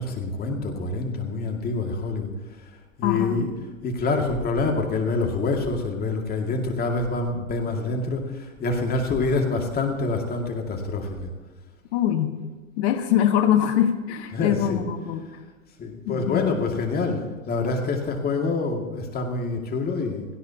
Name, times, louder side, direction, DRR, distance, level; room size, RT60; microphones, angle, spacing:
voice 1, 0.0-2.3 3.0-3.5 3.8-11.3 14.3-14.8 15.8-20.3, left 3 dB, 20° left, 2 dB, 2.3 m, -26 dB
voice 2, 3.0-3.4 11.9-12.4 12.8-15.3 16.1-16.5, left 10 dB, 50° left, 6 dB, 1.6 m, -23 dB
17.0 x 16.5 x 2.9 m, 1.3 s
hypercardioid pair, 110°, 41 cm